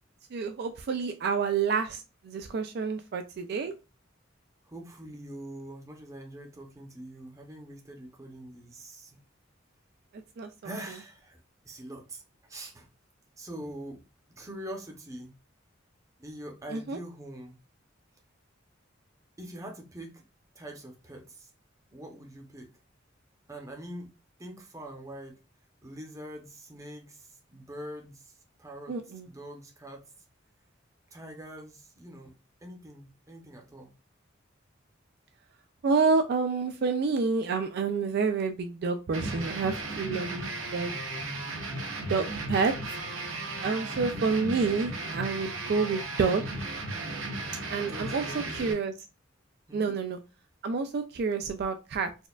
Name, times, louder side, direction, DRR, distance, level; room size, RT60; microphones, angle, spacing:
voice 1, 0.3-3.7 10.4-10.5 16.7-17.0 28.9-29.3 35.8-40.9 42.1-42.7 43.6-46.4 47.7-48.2 48.5-48.9 49.7-50.2 50.6-52.1, right 4 dB, 55° right, 0.3 m, -28 dB
voice 2, 4.6-9.2 10.6-11.4 11.6-12.9 13.4-14.0 14.3-15.3 16.2-17.6 19.4-20.2 20.5-21.5 21.9-22.7 23.5-24.1 24.4-25.4 25.8-28.3 28.6-29.0 29.3-30.1 31.1-32.3 32.6-33.9 47.8-48.5 49.7-49.9, right 1 dB, 15° right, 0.7 m, -43 dB
sound 1, 39.1-48.7, right 2 dB, 85° right, 0.9 m, -35 dB
4.2 x 2.3 x 2.3 m
head